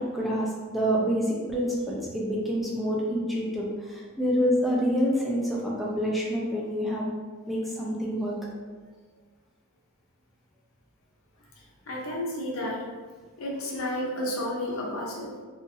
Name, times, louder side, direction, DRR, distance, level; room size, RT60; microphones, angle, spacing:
voice 1, 0.0-7.1 7.5-8.4, equal, ahead, -5 dB, 0.4 m, -27 dB
voice 2, 11.9-12.9 13.4-15.4, left 1 dB, 70° left, -3 dB, 0.7 m, -31 dB
2.8 x 2.6 x 2.6 m, 1.4 s
head